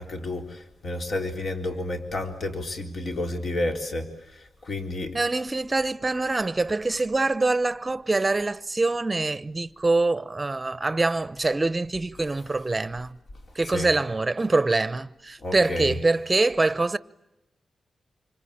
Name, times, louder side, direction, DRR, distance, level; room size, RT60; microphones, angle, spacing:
voice 1, 0.0-4.1 4.3-5.1 12.2-12.3 13.6-14.0 15.4-16.0, left 2 dB, 55° left, 3.9 m, -31 dB
voice 2, 5.1-13.2 13.5-17.0, right 3 dB, 25° right, 0.9 m, -24 dB
27.0 x 25.0 x 8.7 m
wide cardioid pair, 105°, 0 cm